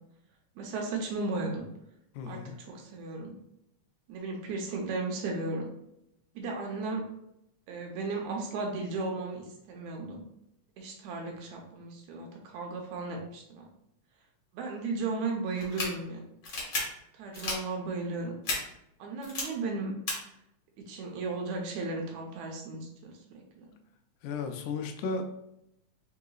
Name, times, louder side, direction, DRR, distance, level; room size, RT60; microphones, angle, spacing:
voice 1, 0.6-1.7 2.3-2.4 2.7-3.3 4.1-5.7 6.4-7.0 7.7-10.2 10.8-13.6 14.5-16.2 17.2-18.3 19.0-19.9 20.8-23.6, right 3 dB, 75° right, 1 dB, 1.9 m, -35 dB
voice 2, 2.1-2.6 24.2-25.2, left 4 dB, 85° left, 5 dB, 2.1 m, -34 dB
sound 1, 15.6-15.9 16.4-16.8 17.3-17.6 18.4-18.6 19.2-19.4 20.1-20.2, left 3 dB, 50° left, 1.4 m, -32 dB
4.7 x 3.8 x 2.3 m, 0.81 s
omnidirectional pair, 3.6 m